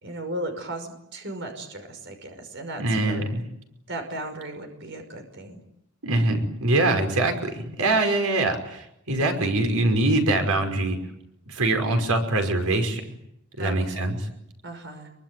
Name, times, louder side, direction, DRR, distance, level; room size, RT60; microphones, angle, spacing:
voice 1, 0.0-3.3 3.9-5.6 13.6-14.1 14.6-15.1, right 1 dB, 55° right, 6 dB, 5.6 m, -36 dB
voice 2, 2.8-3.4 6.0-11.0 11.5-13.0 13.6-14.2, right 2 dB, 85° right, 5 dB, 5.4 m, -23 dB
26.5 x 24.0 x 9.3 m, 0.77 s
head